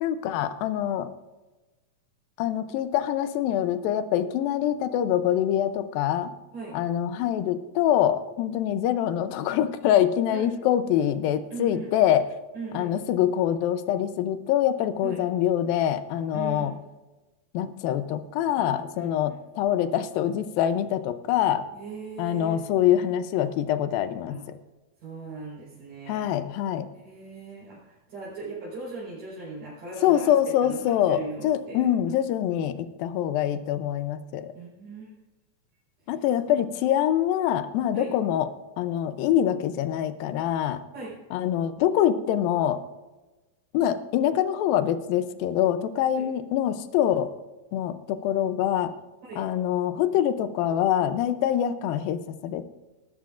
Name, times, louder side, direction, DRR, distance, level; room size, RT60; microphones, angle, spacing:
voice 1, 0.0-1.1 2.4-6.3 6.7-12.3 12.7-16.7 17.5-21.6 22.2-24.6 26.1-26.9 30.0-34.5 36.1-38.5 38.8-40.8 41.3-42.8 43.7-47.3 47.7-48.9 49.4-52.7, left 10 dB, 90° left, 11 dB, 2.5 m, -25 dB
voice 2, 11.5-11.9 12.5-12.9 15.0-15.2 16.3-16.7 18.6-19.3 21.7-22.6 24.3-24.4 25.0-26.3 26.9-30.3 30.6-31.9 32.5-32.6 34.6-35.1 36.4-36.6 37.9-38.1 40.9-41.2 46.1-46.3 49.2-49.4, right 3 dB, 70° right, -6 dB, 6.1 m, -39 dB
19.5 x 13.5 x 2.5 m, 1.1 s
omnidirectional pair, 4.0 m